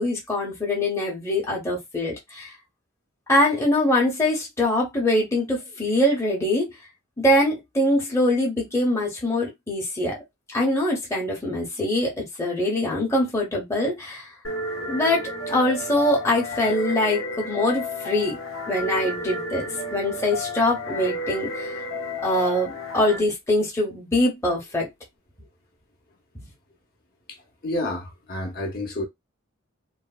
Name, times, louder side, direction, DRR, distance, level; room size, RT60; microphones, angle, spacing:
voice 1, 0.0-2.5 3.3-6.7 7.2-10.2 10.5-14.3 14.9-18.4 18.7-21.8 22.2-24.9, left 1 dB, 15° left, 0.8 m, -23 dB
sound 1, 14.4-23.2, left 1 dB, 80° left, 0.9 m, -32 dB
voice 2, 27.3-29.0, left 1 dB, 45° left, 0.8 m, -30 dB
3.1 x 2.1 x 2.3 m
head